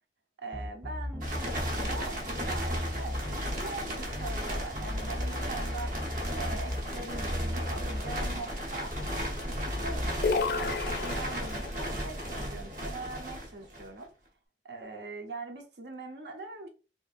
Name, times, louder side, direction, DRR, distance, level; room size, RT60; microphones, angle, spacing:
voice 1, 0.4-6.0 6.3-8.9 9.4-14.1 14.6-16.7, right 3 dB, 75° right, 0.8 m, -42 dB
sound 1, 0.5-2.1 2.3-3.6 4.1-4.4 4.7-6.9 7.1-8.4 8.9-9.2 9.5-10.1, left 1 dB, 5° right, 0.7 m, -36 dB
sound 2, 1.2-14.0, equal, 45° right, 1.0 m, -35 dB
sound 3, 10.2-11.8, left 4 dB, 60° left, 0.4 m, -31 dB
4.6 x 2.6 x 2.5 m
head